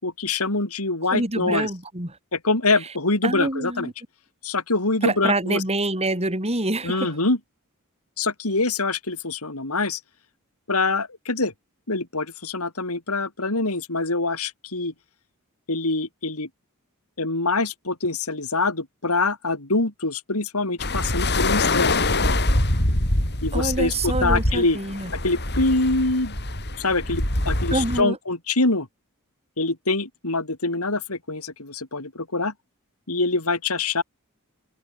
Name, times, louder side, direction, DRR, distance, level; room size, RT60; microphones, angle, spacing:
voice 1, 0.0-1.7 2.3-3.9 4.4-5.6 6.8-7.4 8.2-10.0 10.7-11.5 11.9-14.9 15.7-16.5 17.2-22.4 23.4-24.8 25.2-26.4 26.8-28.9 29.6-32.5 33.1-34.0, left 3 dB, 80° left, 4.0 m, -25 dB
voice 2, 1.0-2.2 3.2-3.9 5.0-7.1 23.5-25.1 27.7-28.2, right 2 dB, 30° right, 6.7 m, -26 dB
sound 1, 20.8-28.0, left 2 dB, 50° left, 7.1 m, -24 dB
head